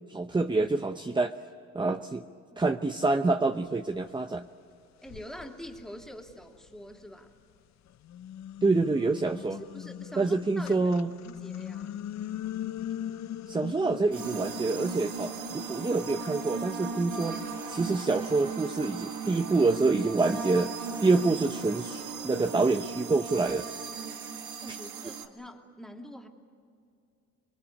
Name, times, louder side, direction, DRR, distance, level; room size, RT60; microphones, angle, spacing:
voice 1, 0.1-1.4 1.7-2.3 2.6-4.4 8.6-9.6 10.2-11.1 13.5-23.7 24.7-24.8, right 3 dB, 15° right, 8 dB, 0.7 m, -27 dB
sound 1, 4.3-4.4 5.0-7.3 7.9-19.2, left 11 dB, 65° left, 0.8 m, -41 dB
voice 2, 5.0-7.3 9.5-10.9 11.2-11.9 24.6-26.3, equal, ahead, 2 dB, 2.8 m, -45 dB
sound 2, 14.1-25.3, right 5 dB, 75° right, 1.8 m, -37 dB
25.0 x 22.0 x 8.4 m, 2.5 s
cardioid pair, 90°, 30 cm